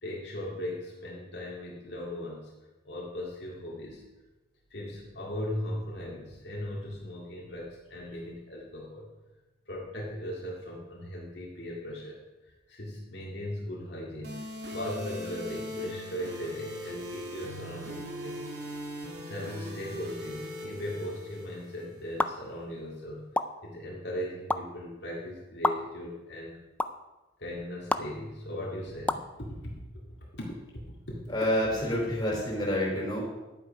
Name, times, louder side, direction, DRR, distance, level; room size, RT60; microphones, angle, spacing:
voice 1, 0.0-2.5 2.8-4.0 4.7-9.0 9.7-12.2 12.7-14.4 14.7-18.4 19.2-23.3 23.6-26.6 27.4-29.7 30.3-30.6 31.1-31.2, left 1 dB, 65° left, -4 dB, 2.1 m, -38 dB
sound 1, 14.2-22.2, equal, 60° right, 2.6 m, -40 dB
sound 2, 22.2-22.3 23.3-23.4 24.5-24.6 25.6-25.7 26.8-26.9 27.9-28.0 29.1-29.2, left 2 dB, 10° left, 0.4 m, -25 dB
voice 2, 31.3-33.2, equal, 25° left, -3 dB, 4.1 m, -28 dB
11.5 x 8.6 x 5.2 m, 1.1 s
head